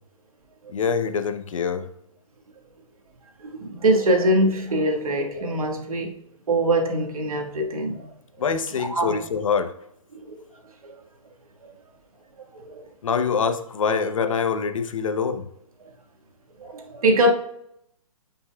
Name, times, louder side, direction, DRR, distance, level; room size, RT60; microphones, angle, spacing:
voice 1, 0.7-1.9 8.4-9.7 13.0-15.4, left 6 dB, 65° left, 0.8 m, -25 dB
voice 2, 3.4-6.1 6.5-8.1 8.8-9.2 10.1-10.4 10.8-11.0 12.5-12.8 16.6-17.3, right 1 dB, 90° right, 1.8 m, -23 dB
13.0 x 5.5 x 2.3 m
hypercardioid pair, 165°, 18 cm